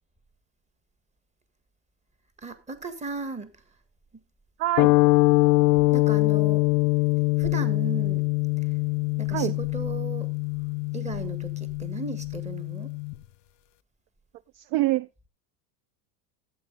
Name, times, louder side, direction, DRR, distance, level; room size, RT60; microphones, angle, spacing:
voice 1, 2.4-3.5 5.9-6.7 7.4-8.3 9.2-10.3 10.9-12.9, right 4 dB, 15° right, 1.6 m, -36 dB
voice 2, 4.6-4.9 9.3-9.6 14.5-15.1, right 16 dB, 50° right, 0.5 m, -25 dB
sound 1, 4.8-13.1, left 25 dB, 80° left, 0.6 m, -23 dB
12.5 x 8.3 x 3.9 m
supercardioid pair, 115°, 48 cm